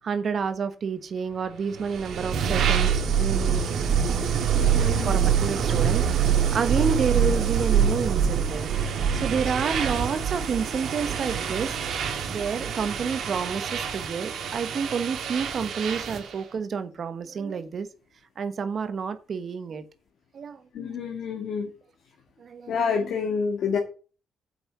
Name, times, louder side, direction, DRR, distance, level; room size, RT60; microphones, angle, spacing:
voice 1, 0.0-3.8 5.0-11.8 12.3-17.9 18.4-19.8 20.3-20.6 22.4-22.7, right 6 dB, 50° right, 9 dB, 1.2 m, -29 dB
sound 1, 1.7-16.3, right 7 dB, 70° right, 2.2 m, -25 dB
voice 2, 4.6-5.2 20.7-21.7 22.7-23.8, left 6 dB, 70° left, 1 dB, 2.0 m, -28 dB
7.7 x 5.7 x 6.8 m, 0.36 s
cardioid pair, 90°, 0 cm